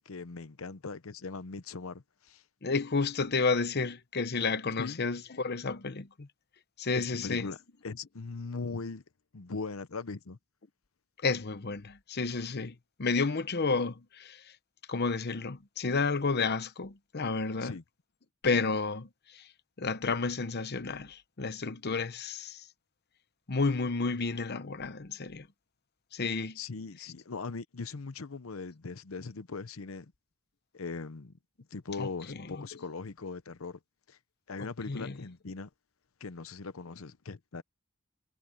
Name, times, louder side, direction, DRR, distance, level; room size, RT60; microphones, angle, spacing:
voice 1, 0.1-2.4 4.8-5.0 6.9-7.6 7.8-9.0 9.3-10.4 17.6-17.8 26.6-30.1 30.7-31.3 31.7-33.8 34.1-34.2 34.5-35.7 36.2-37.6, left 4 dB, 85° left, 0.8 m, -40 dB
voice 2, 2.6-6.3 6.8-7.5 11.2-14.5 14.9-17.8 18.4-19.5 19.8-22.7 23.5-25.5 26.1-26.6 32.0-32.7 34.6-35.1, left 4 dB, 50° left, 0.9 m, -31 dB
head